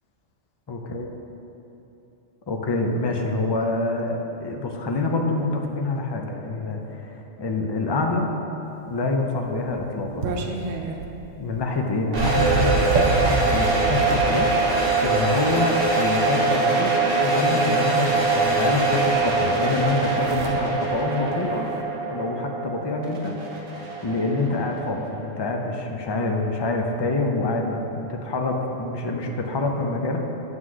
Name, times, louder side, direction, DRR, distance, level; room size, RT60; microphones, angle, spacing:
voice 1, 0.7-1.1 2.5-8.3 8.9-10.4 11.4-14.5 15.0-21.7 22.1-30.2, left 3 dB, 40° left, 2 dB, 0.4 m, -26 dB
sound 1, 8.9-14.3 15.2-16.5 17.8-17.9 18.2-19.3 19.6-21.8, right 3 dB, 75° right, 1.0 m, -33 dB
sound 2, 12.1-25.0, right 3 dB, 45° right, 1.2 m, -23 dB
Alarm, 12.2-19.9, right 3 dB, 70° left, 1.8 m, -30 dB
7.8 x 3.8 x 6.2 m, 3.0 s
omnidirectional pair, 1.3 m